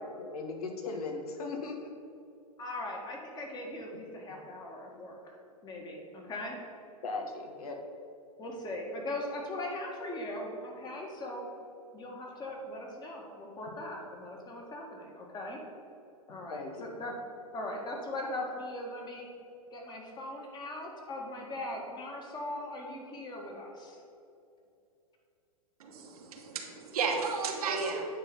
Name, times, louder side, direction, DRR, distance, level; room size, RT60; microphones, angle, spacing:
voice 1, 0.1-1.9 7.0-7.8 13.7-13.8 16.3-17.0, left 3 dB, 75° left, 3 dB, 1.3 m, -38 dB
voice 2, 2.6-6.6 8.4-11.5 11.9-15.6 16.3-17.1 17.5-19.3 19.7-24.0, left 1 dB, 20° left, 0 dB, 1.7 m, -40 dB
voice 3, 25.8-28.0, right 5 dB, 75° right, 2 dB, 1.4 m, -33 dB
9.4 x 3.9 x 5.4 m, 2.6 s
hypercardioid pair, 115°, 19 cm